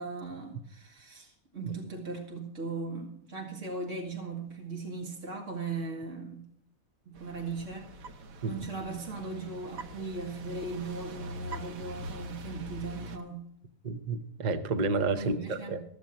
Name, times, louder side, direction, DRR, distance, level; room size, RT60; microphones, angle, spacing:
voice 1, 0.0-6.4 7.1-7.9 8.4-13.4 15.1-15.8, right 3 dB, 60° right, 2.3 m, -38 dB
sound 1, 7.1-13.2, equal, 75° right, 1.4 m, -43 dB
voice 2, 13.8-15.8, right 3 dB, 40° right, 0.8 m, -30 dB
14.5 x 6.9 x 7.5 m
omnidirectional pair, 1.5 m